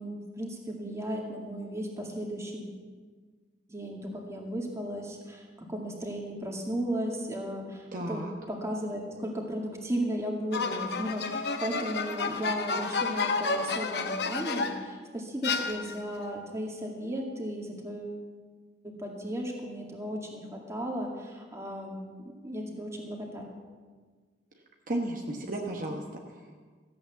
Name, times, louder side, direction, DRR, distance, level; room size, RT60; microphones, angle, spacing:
voice 1, 0.0-2.7 3.7-5.4 5.7-18.2 18.8-22.1 22.4-23.4 25.4-25.8, equal, 15° right, -1 dB, 2.1 m, -35 dB
voice 2, 7.9-8.3 24.9-26.6, right 1 dB, 50° right, 1 dB, 1.1 m, -34 dB
sound 1, 10.5-14.9 15.4-16.2, left 4 dB, 65° left, 0.9 m, -31 dB
14.0 x 8.7 x 7.0 m, 1.5 s
head